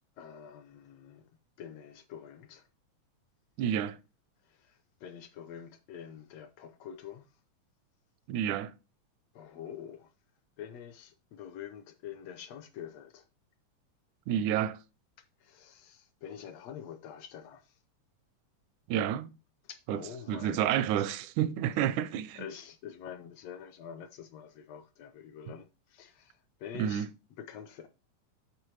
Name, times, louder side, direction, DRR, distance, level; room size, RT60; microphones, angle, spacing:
voice 1, 0.2-1.3 1.6-2.7 4.5-7.3 9.3-10.1 10.6-13.2 15.4-17.8 19.6-21.1 22.4-27.1 27.4-27.9, left 8 dB, 75° left, 1.6 m, -46 dB
voice 2, 3.6-4.0 8.3-8.7 14.3-14.8 18.9-19.3 19.9-20.0 20.3-22.5 26.7-27.1, right 10 dB, 85° right, 2.0 m, -29 dB
9.2 x 6.8 x 3.2 m
omnidirectional pair, 3.4 m